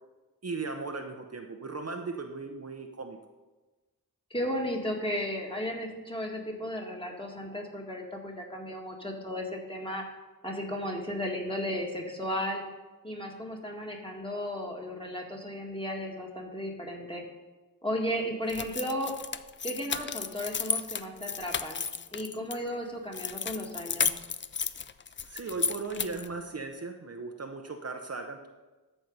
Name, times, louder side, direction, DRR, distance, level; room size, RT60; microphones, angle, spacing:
voice 1, 0.4-3.2 25.2-28.5, right 4 dB, 45° right, 4 dB, 0.7 m, -37 dB
voice 2, 4.3-10.0 10.4-12.6 13.0-17.2 17.8-19.1 19.6-21.9 22.1-24.1, equal, 15° left, 0 dB, 1.9 m, -34 dB
sound 1, 18.5-22.6 23.1-26.3, left 6 dB, 35° left, 0.4 m, -33 dB
13.5 x 4.5 x 5.3 m, 1.2 s
wide cardioid pair, 65°, 35 cm